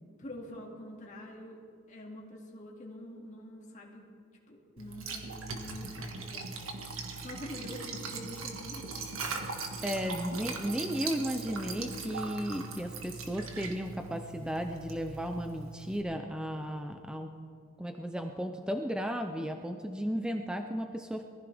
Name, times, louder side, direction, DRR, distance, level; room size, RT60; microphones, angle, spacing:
voice 1, 0.2-1.6 1.9-4.0 4.5-9.1 9.9-10.0, left 1 dB, 35° left, -2 dB, 2.4 m, -46 dB
Liquid, 4.8-16.0, right 4 dB, 85° right, 1.8 m, -40 dB
voice 2, 9.8-17.3 17.8-21.3, equal, 5° right, 5 dB, 0.5 m, -34 dB
22.5 x 15.0 x 3.5 m, 2.3 s
head